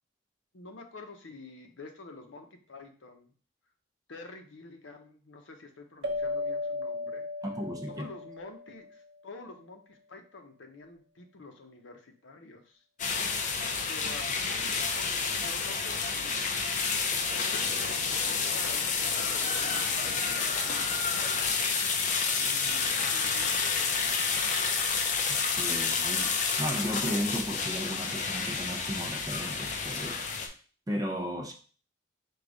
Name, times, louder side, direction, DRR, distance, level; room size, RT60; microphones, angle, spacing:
voice 1, 0.5-3.3 4.1-7.3 7.9-12.8 13.8-16.7 17.2-21.2 22.3-24.5, left 3 dB, 80° left, 0.7 m, -48 dB
sound 1, 6.0-9.0, left 3 dB, 65° right, 0.6 m, -35 dB
voice 2, 7.4-8.1 25.3-30.3 30.9-31.5, equal, 20° right, 0.5 m, -35 dB
sound 2, 13.0-30.5, left 5 dB, 40° left, 0.5 m, -29 dB
4.8 x 2.3 x 3.8 m
head